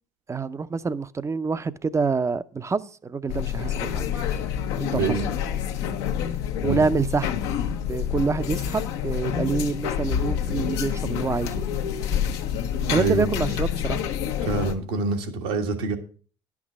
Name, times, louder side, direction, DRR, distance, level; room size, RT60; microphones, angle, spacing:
voice 1, 0.3-4.0 4.8-5.2 6.6-7.3 7.9-11.6 12.9-14.0, right 4 dB, 20° right, 15 dB, 0.6 m, -26 dB
sound 1, 3.3-14.7, left 9 dB, 85° left, 1.0 m, -27 dB
voice 2, 4.9-5.3 6.6-6.8 12.8-13.3 14.4-16.0, right 4 dB, 80° right, 4 dB, 1.6 m, -26 dB
10.5 x 6.1 x 6.2 m, 0.42 s
supercardioid pair, 75°, 13 cm